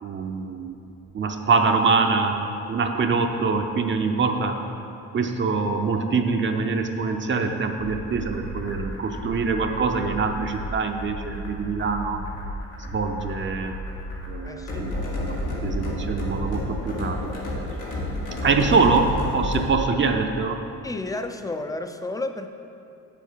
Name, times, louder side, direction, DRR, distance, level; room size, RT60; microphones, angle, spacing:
voice 1, 0.0-0.7 1.1-2.4 2.7-4.6 5.1-12.2 12.9-13.7 14.3-15.3 15.6-17.4 18.4-20.6, right 4 dB, 40° right, 4 dB, 0.7 m, -24 dB
sound 1, 7.8-19.7, left 1 dB, 85° left, 1.9 m, -31 dB
voice 2, 14.5-14.9 18.6-18.7 20.8-22.5, left 2 dB, 10° left, 8 dB, 0.5 m, -32 dB
7.8 x 7.1 x 4.6 m, 2.7 s
cardioid pair, 90°, 30 cm